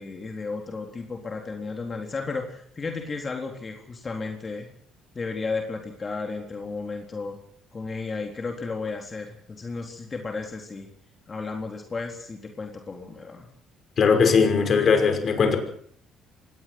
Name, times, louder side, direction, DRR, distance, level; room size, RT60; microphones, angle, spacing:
voice 1, 0.0-4.7 5.1-7.4 7.7-10.9 11.3-13.5, left 4 dB, 30° left, 3.9 m, -33 dB
voice 2, 14.0-15.6, left 5 dB, 45° left, 5.8 m, -19 dB
25.0 x 19.0 x 6.2 m
cardioid pair, 105°, 0 cm